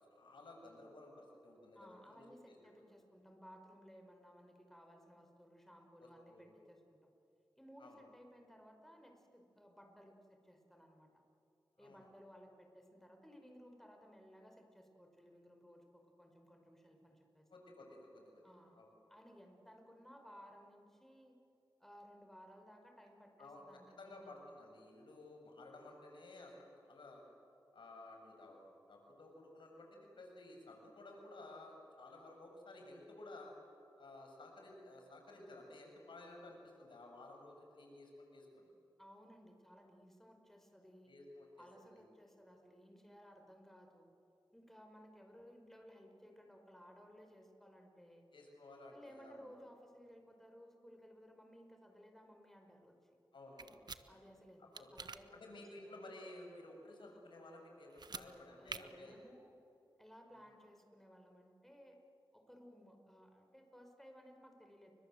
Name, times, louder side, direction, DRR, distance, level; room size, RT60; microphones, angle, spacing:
voice 1, 0.1-2.2 6.0-6.6 7.8-8.0 11.8-12.0 17.5-18.4 18.7-18.9 23.4-23.6 24.0-27.2 27.7-28.6 28.9-33.5 34.0-38.7 41.1-42.0 48.3-49.6 53.3-54.2 54.6-54.9 55.3-59.2, left 2 dB, 80° left, 1 dB, 6.7 m, -55 dB
voice 2, 1.7-7.1 7.6-11.1 11.8-17.5 18.4-18.8 19.1-21.4 21.8-24.4 39.0-41.1 41.6-44.1 44.5-48.2 48.9-53.2 54.1-56.0 58.1-59.6 60.0-62.0 62.3-64.9, equal, 5° left, 3 dB, 4.9 m, -59 dB
sound 1, 53.6-54.0 54.7-55.2 57.9-58.3 58.7-58.8, right 4 dB, 60° right, 1.2 m, -46 dB
29.5 x 24.5 x 7.9 m, 2.7 s
cardioid pair, 60°, 8 cm